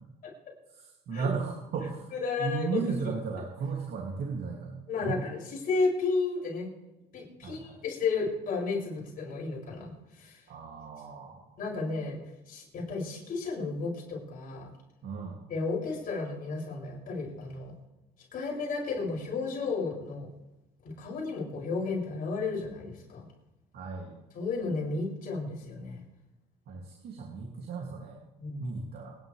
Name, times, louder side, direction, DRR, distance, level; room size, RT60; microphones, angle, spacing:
voice 1, 0.8-2.1 2.4-5.2 7.4-7.8 10.5-11.6 15.0-15.4 23.7-24.2 26.7-28.2 28.6-29.2, right 5 dB, 65° right, -1 dB, 2.9 m, -35 dB
voice 2, 2.1-3.1 4.9-6.7 7.1-9.9 10.2-10.4 11.6-12.2 12.5-14.7 15.5-17.7 18.3-20.3 21.0-23.2 24.3-26.0 28.4-28.6, left 4 dB, 55° left, -3 dB, 7.5 m, -33 dB
28.5 x 11.0 x 3.5 m, 0.98 s
cardioid pair, 110°, 17 cm